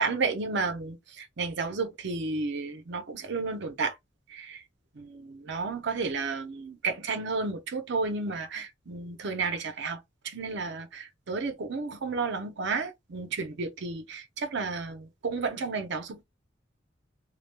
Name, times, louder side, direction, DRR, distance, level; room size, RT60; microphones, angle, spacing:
voice 1, 0.0-4.0 4.3-4.6 5.0-10.0 10.2-16.2, right 4 dB, 65° right, 0.6 m, -32 dB
2.3 x 2.1 x 3.2 m
head